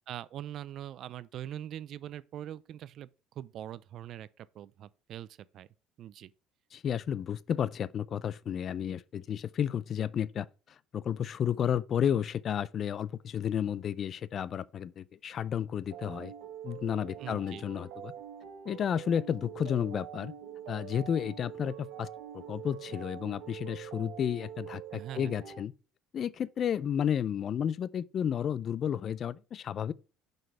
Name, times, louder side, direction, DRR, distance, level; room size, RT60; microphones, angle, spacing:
voice 1, 0.1-3.1 3.4-5.7 6.0-6.3 17.2-17.6 24.9-25.3, right 11 dB, 55° right, 0.4 m, -42 dB
voice 2, 6.7-10.5 10.9-16.3 16.6-18.1 18.7-20.3 20.7-22.1 22.3-25.7 26.1-29.9, left 9 dB, 45° left, 0.4 m, -32 dB
sound 1, 15.9-25.6, right 10 dB, 90° right, 1.4 m, -45 dB
5.9 x 5.3 x 4.5 m
cardioid pair, 115°, 0 cm